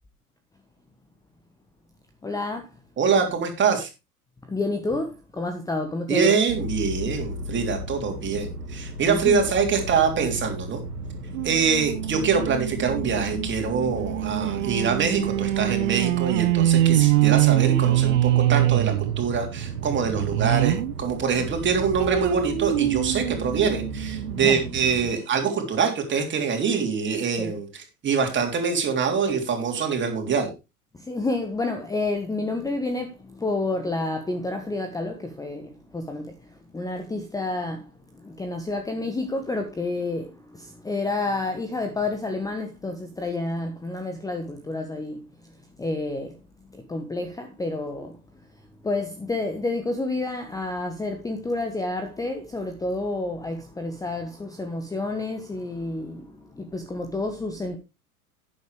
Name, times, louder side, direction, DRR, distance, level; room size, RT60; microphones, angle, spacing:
voice 1, 2.2-2.7 4.5-6.3 9.1-9.5 24.3-24.6 27.4-27.6 30.9-45.2 45.8-46.3 46.7-48.2 48.8-57.8, left 2 dB, 10° left, 1.2 m, -29 dB
voice 2, 3.0-3.9 6.1-10.8 11.4-30.5, right 6 dB, 25° right, 3.3 m, -24 dB
sound 1, 6.5-25.1, right 1 dB, 85° right, 1.9 m, -35 dB
sound 2, 11.3-20.9 21.4-24.4 25.0-25.1 25.3-25.4, right 15 dB, 55° right, 0.7 m, -24 dB
12.0 x 9.5 x 3.2 m
figure-of-eight pair, 90°, 45 cm